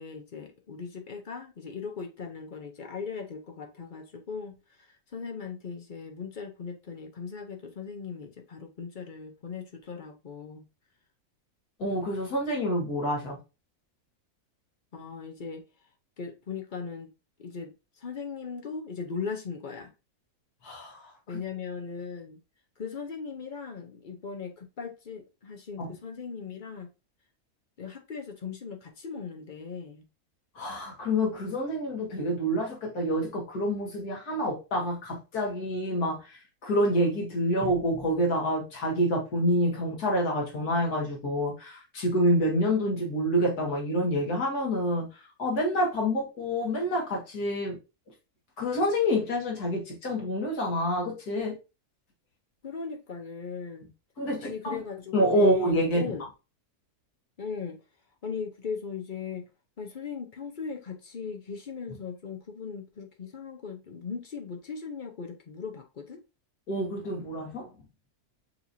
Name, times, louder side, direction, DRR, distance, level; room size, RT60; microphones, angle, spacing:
voice 1, 0.0-4.5 4.9-10.7 14.9-15.6 16.2-17.1 17.4-19.9 21.3-22.4 22.8-26.9 27.8-30.1 52.6-53.9 54.4-56.3 57.4-57.8 58.2-59.5 59.8-66.2, left 5 dB, 50° left, 0.6 m, -38 dB
voice 2, 11.8-13.4 20.6-21.0 25.8-25.9 30.6-47.8 48.6-51.6 54.2-54.8 55.1-56.0 66.7-67.7, equal, 85° left, 2.2 m, -27 dB
6.6 x 3.0 x 2.6 m
omnidirectional pair, 1.6 m